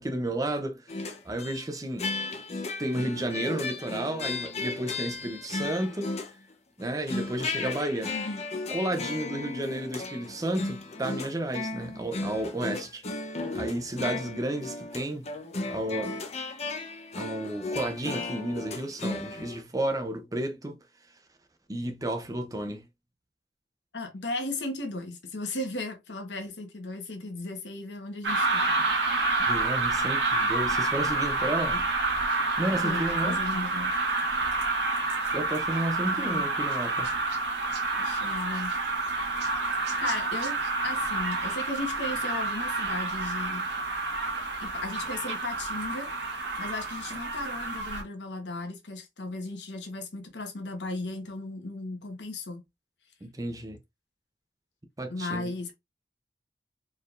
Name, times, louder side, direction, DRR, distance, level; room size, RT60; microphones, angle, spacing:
voice 1, 0.0-2.1 2.8-6.1 6.8-8.1 8.7-13.0 13.5-15.3 15.7-16.1 17.1-20.8 21.7-22.8 29.4-31.8 32.6-33.4 35.3-37.2 53.2-53.8 55.0-55.5, right 1 dB, 20° right, 0.7 m, -32 dB
sound 1, 0.9-1.6 2.0-6.5 6.8-19.6, left 3 dB, 40° left, 0.7 m, -35 dB
voice 2, 8.1-8.4 23.9-28.9 31.7-31.8 32.8-33.9 36.1-36.5 37.9-38.7 40.0-40.6 40.8-43.7 44.6-46.1 46.6-52.6 55.1-55.7, left 2 dB, 80° left, 1.2 m, -36 dB
sound 2, 28.2-48.0, right 3 dB, 85° right, 1.5 m, -28 dB
4.4 x 3.4 x 2.5 m
head